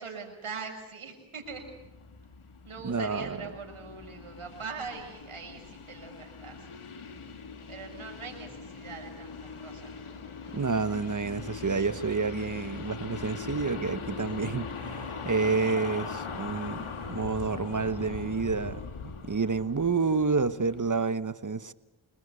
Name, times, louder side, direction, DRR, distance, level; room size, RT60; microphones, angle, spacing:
voice 1, 0.0-1.7 2.6-6.7 7.7-9.9, right 5 dB, 85° right, 5.8 m, -42 dB
sound 1, 1.4-21.0, left 5 dB, 80° left, 2.2 m, -41 dB
voice 2, 2.8-3.5 10.5-18.8 19.3-21.7, right 4 dB, 40° right, 1.2 m, -29 dB
27.0 x 20.5 x 8.3 m
cardioid pair, 50°, 49 cm